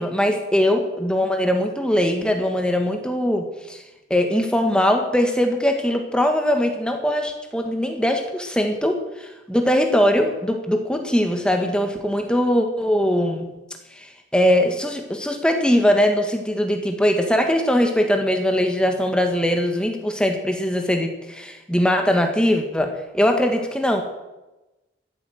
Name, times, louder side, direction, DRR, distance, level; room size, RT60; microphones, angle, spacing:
voice 1, 0.0-3.8 4.1-13.5 14.0-24.0, equal, 5° left, 4 dB, 1.5 m, -21 dB
13.5 x 8.9 x 7.8 m, 1.0 s
head